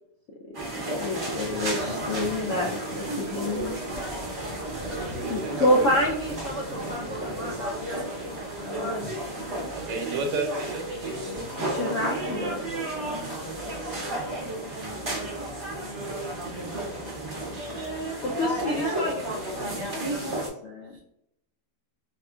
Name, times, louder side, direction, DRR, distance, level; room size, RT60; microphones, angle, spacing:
sound 1, 0.5-20.5, right 1 dB, 35° right, 0.5 m, -32 dB
voice 1, 0.7-3.8 5.3-9.3 11.7-12.5 18.2-21.0, left 1 dB, 75° left, -1 dB, 0.7 m, -29 dB
voice 2, 4.8-6.0 9.7-10.9, right 3 dB, 80° right, 3 dB, 1.2 m, -32 dB
voice 3, 9.6-10.0 11.9-14.5 16.6-18.0 20.8-21.0, right 3 dB, 60° right, -1 dB, 0.8 m, -44 dB
4.8 x 2.5 x 2.3 m, 0.78 s
omnidirectional pair, 1.8 m